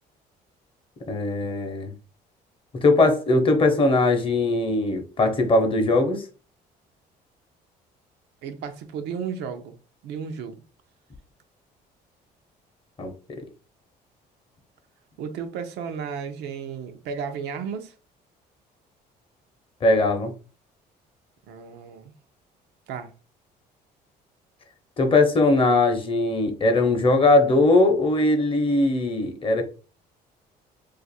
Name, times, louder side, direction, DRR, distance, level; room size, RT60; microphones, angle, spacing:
voice 1, 1.1-1.9 2.8-6.3 13.0-13.1 19.8-20.3 25.0-29.6, left 2 dB, 30° left, 0.7 m, -20 dB
voice 2, 8.4-9.7 10.0-10.6 15.2-17.9 21.5-22.1 22.9-23.1, right 6 dB, 85° right, 0.6 m, -33 dB
2.4 x 2.4 x 4.1 m
cardioid pair, 110°, 17 cm